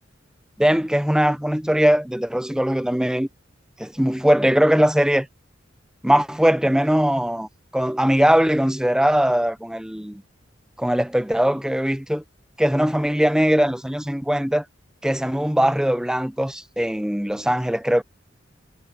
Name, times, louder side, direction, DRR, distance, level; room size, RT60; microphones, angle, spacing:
voice 1, 0.6-3.3 3.8-5.3 6.0-10.2 10.8-12.2 12.6-14.6 15.0-18.0, equal, 5° right, 0.6 m, -20 dB
head